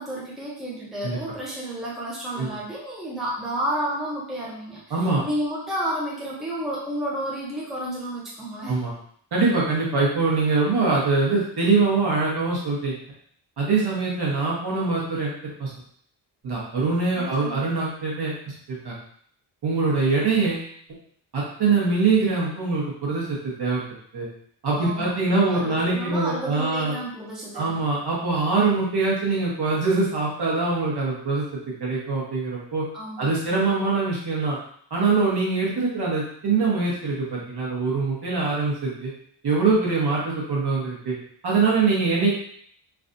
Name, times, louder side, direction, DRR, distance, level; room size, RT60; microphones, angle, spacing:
voice 1, 0.0-5.0 5.2-8.8 17.2-17.7 24.8-27.8 32.9-33.3, right 1 dB, ahead, -6 dB, 0.6 m, -31 dB
voice 2, 4.9-5.2 8.7-8.9 9.3-13.0 13.6-15.7 16.4-18.3 18.7-19.0 19.6-20.7 21.3-23.8 24.1-24.3 24.6-27.0 27.5-31.4 31.8-32.8 33.2-34.6 34.9-39.1 39.4-41.1 41.4-42.3, right 4 dB, 60° right, -4 dB, 1.1 m, -23 dB
3.3 x 2.4 x 2.6 m, 0.62 s
wide cardioid pair, 140°, 45 cm